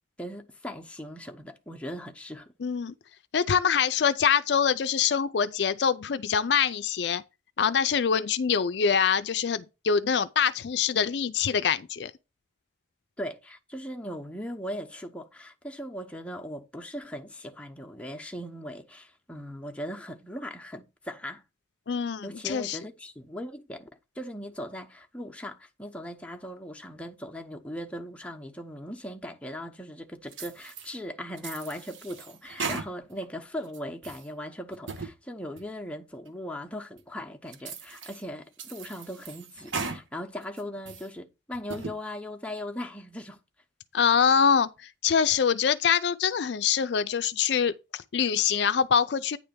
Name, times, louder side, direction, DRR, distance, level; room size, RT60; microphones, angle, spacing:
voice 1, 0.2-2.5 13.2-21.4 22.2-23.9 24.1-43.4, equal, 5° left, 0.8 m, -39 dB
voice 2, 2.6-2.9 3.3-7.2 7.6-12.1 21.9-22.8 43.9-49.4, left 7 dB, 65° left, 0.4 m, -24 dB
sound 1, 30.3-30.9 31.4-33.3 33.6-34.3 34.7-35.1 35.6-35.7 36.3-36.4 37.0-37.1 37.5-38.2 38.6-40.0 40.4-41.1 41.5-41.9, right 4 dB, 85° right, 1.1 m, -38 dB
9.4 x 3.3 x 6.7 m
head